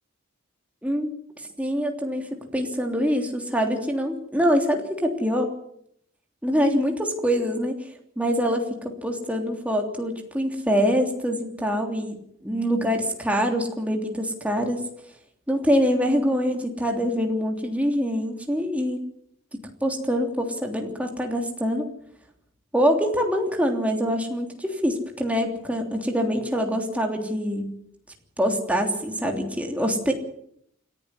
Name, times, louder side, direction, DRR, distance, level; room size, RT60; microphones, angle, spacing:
voice 1, 0.8-5.5 6.4-7.8 8.2-12.2 12.4-14.8 15.5-19.0 19.8-21.9 22.7-27.7 28.4-30.1, equal, 5° right, 2 dB, 3.1 m, -25 dB
29.0 x 10.5 x 9.7 m, 0.71 s
head